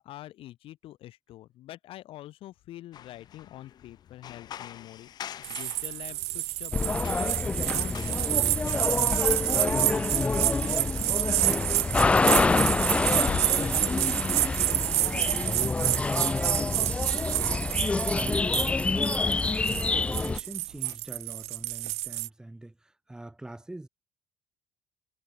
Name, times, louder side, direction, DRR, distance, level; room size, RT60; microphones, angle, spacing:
voice 1, 0.0-9.0 9.3-11.8 12.2-15.3, left 14 dB, 55° left, 2.9 m, -46 dB
sound 1, 2.9-21.0, left 10 dB, 40° left, 1.4 m, -47 dB
sound 2, 5.4-22.3, right 20 dB, 80° right, 0.9 m, -29 dB
sound 3, 6.7-20.4, left 3 dB, 10° left, 0.4 m, -27 dB
voice 2, 17.7-23.9, right 1 dB, 5° right, 2.8 m, -43 dB
cardioid pair, 170°, 11 cm